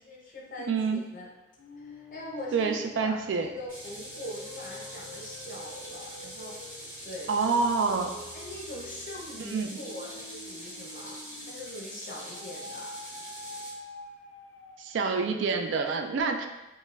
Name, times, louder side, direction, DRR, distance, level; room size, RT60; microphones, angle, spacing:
voice 1, 0.1-1.3 1.8-6.6 7.0-7.3 8.3-11.2 11.5-12.9, left 1 dB, 45° left, -3 dB, 0.6 m, -42 dB
voice 2, 0.7-1.0 2.5-3.5 7.3-8.1 9.5-9.7 14.8-16.5, right 4 dB, 70° right, 6 dB, 0.3 m, -27 dB
sound 1, 1.6-11.8 12.3-15.1, left 2 dB, 80° left, 0.3 m, -47 dB
sound 2, 3.7-13.7, equal, 15° right, 1.4 m, -44 dB
4.3 x 2.1 x 2.3 m, 0.99 s
head